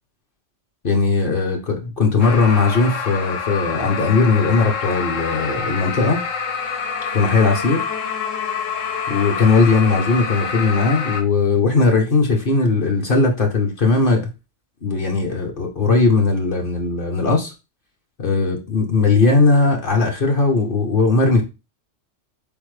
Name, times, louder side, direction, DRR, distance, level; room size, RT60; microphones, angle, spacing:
voice 1, 0.8-6.2 7.1-7.8 9.1-14.3 14.8-17.5 18.2-21.4, left 3 dB, 50° left, 0.9 m, -18 dB
sound 1, 2.2-11.2, left 6 dB, 80° left, 1.2 m, -27 dB
4.1 x 3.6 x 3.2 m
omnidirectional pair, 1.3 m